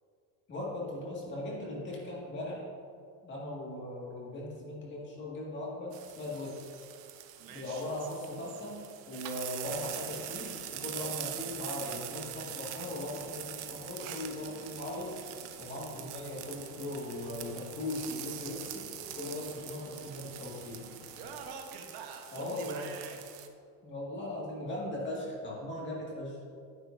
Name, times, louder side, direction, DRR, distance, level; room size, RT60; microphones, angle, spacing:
voice 1, 0.5-2.7 3.2-6.6 7.5-8.8 9.1-15.2 15.6-18.9 19.2-20.8 22.3-22.9 23.8-26.4, left 1 dB, 25° left, -4 dB, 1.9 m, -39 dB
sound 1, 5.9-23.5, right 12 dB, 90° right, 0.8 m, -44 dB
voice 2, 7.4-7.9 21.2-23.2, right 5 dB, 65° right, 3 dB, 1.1 m, -46 dB
sound 2, 9.6-21.5, left 6 dB, 85° left, 0.8 m, -54 dB
9.7 x 9.6 x 2.6 m, 2.3 s
cardioid pair, 155°, 41 cm